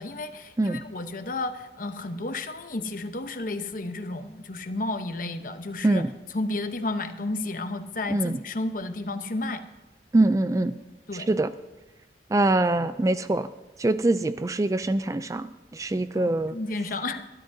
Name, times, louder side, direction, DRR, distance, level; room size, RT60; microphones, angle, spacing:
voice 1, 0.0-6.0 6.3-9.6 11.1-11.3 16.1-17.2, left 2 dB, 50° left, 9 dB, 0.9 m, -32 dB
voice 2, 8.1-8.4 10.1-10.7 11.1-11.5 12.3-13.5 13.8-15.5 15.7-16.6, right 2 dB, 20° right, 12 dB, 0.3 m, -23 dB
21.5 x 13.0 x 2.7 m, 1.1 s
head